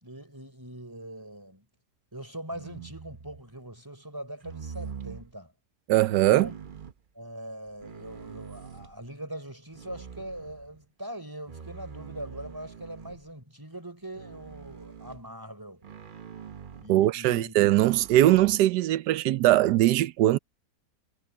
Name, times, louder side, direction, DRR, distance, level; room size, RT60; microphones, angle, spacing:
voice 1, 0.0-1.7 2.1-5.5 6.1-6.5 7.1-15.9 16.8-17.6, right 1 dB, 10° right, 4.2 m, -42 dB
sound 1, 2.5-3.5 4.4-5.3 6.2-7.0 7.7-9.1 9.7-10.9 11.5-13.3 14.1-15.3 15.8-16.9 17.6-18.6, right 6 dB, 40° right, 0.8 m, -44 dB
voice 2, 5.9-6.5 16.9-20.4, right 14 dB, 85° right, 1.3 m, -21 dB
omnidirectional pair, 1.8 m